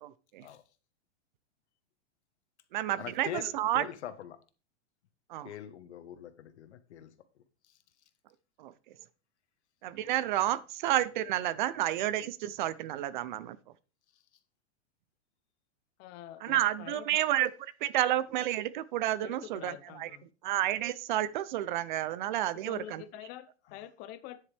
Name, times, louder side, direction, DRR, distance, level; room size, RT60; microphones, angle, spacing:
voice 1, 0.0-0.5 2.7-3.9 5.3-5.5 8.6-8.7 9.8-13.6 16.4-20.1 20.4-23.0, right 13 dB, 45° right, 0.6 m, -30 dB
voice 2, 3.0-4.4 5.4-7.8, left 10 dB, 85° left, 1.5 m, -43 dB
voice 3, 16.0-17.1 19.2-20.3 22.6-24.4, left 13 dB, 25° left, 0.7 m, -46 dB
9.7 x 8.4 x 3.5 m
supercardioid pair, 165°, 33 cm